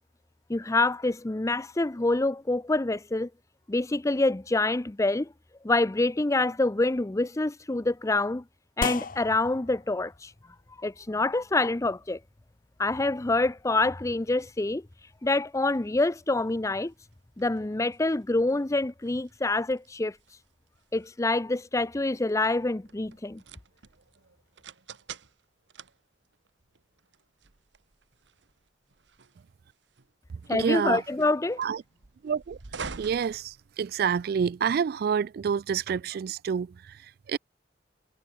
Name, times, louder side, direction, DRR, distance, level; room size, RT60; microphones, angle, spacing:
voice 1, 0.5-3.3 3.7-5.3 5.6-8.4 8.8-10.3 10.8-12.2 12.8-14.9 15.2-16.9 17.4-20.2 20.9-23.4 30.5-31.6, left 2 dB, 15° left, 0.5 m, -26 dB
springmic pophifi, 8.8-17.5, left 4 dB, 50° left, 1.0 m, -42 dB
sound 1, 14.8-34.2, right 5 dB, 85° right, 1.3 m, -48 dB
voice 2, 30.5-31.0 31.6-31.8 32.2-32.6 33.0-37.0 37.3-37.4, right 7 dB, 60° right, 0.3 m, -28 dB
head